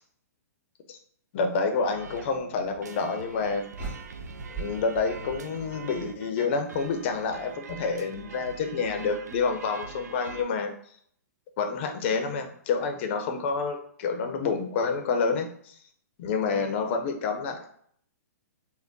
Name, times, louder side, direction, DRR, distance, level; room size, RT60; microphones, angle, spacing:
voice 1, 1.3-3.7 4.5-10.7 11.6-15.8 16.2-17.6, left 4 dB, 45° left, 5 dB, 0.6 m, -28 dB
sound 1, 1.8-10.4, right 5 dB, 90° right, 0.4 m, -44 dB
sound 2, 3.7-6.1, right 4 dB, 10° right, 1.5 m, -40 dB
3.4 x 2.2 x 3.8 m, 0.62 s
hypercardioid pair, 130°, 9 cm